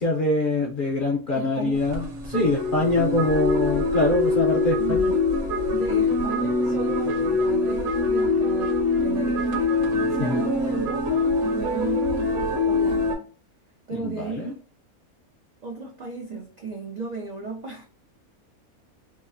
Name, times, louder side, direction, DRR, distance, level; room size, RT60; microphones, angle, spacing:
voice 1, 0.0-5.1 10.2-10.4 13.9-14.5, left 2 dB, 60° left, 0.5 m, -24 dB
voice 2, 1.3-1.9 4.8-5.1 5.7-9.7 10.0-13.2 13.9-14.6 15.6-17.9, right 3 dB, 85° right, 0.3 m, -35 dB
sound 1, 1.8-13.2, left 3 dB, 60° right, 1.0 m, -24 dB
2.9 x 2.3 x 2.4 m
omnidirectional pair, 1.5 m